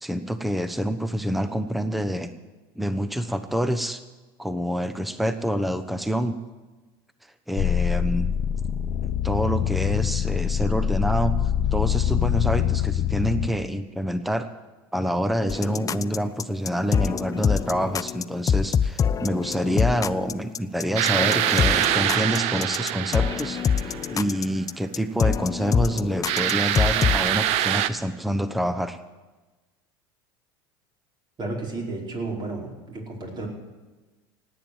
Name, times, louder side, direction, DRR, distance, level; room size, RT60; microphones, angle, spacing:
voice 1, 0.0-2.3 2.8-4.0 4.4-6.4 7.5-8.3 9.0-11.3 11.7-14.5 14.9-29.0, equal, ahead, 10 dB, 0.9 m, -27 dB
sound 1, 7.6-13.5, left 9 dB, 45° left, 0.9 m, -24 dB
sound 2, 15.5-27.3, left 7 dB, 25° left, 0.5 m, -25 dB
sound 3, 21.0-24.2 26.2-27.9, right 12 dB, 60° right, 0.8 m, -24 dB
voice 2, 31.4-33.5, right 2 dB, 35° right, 0 dB, 5.0 m, -32 dB
18.0 x 9.2 x 8.0 m, 1.2 s
hypercardioid pair, 85°, 13 cm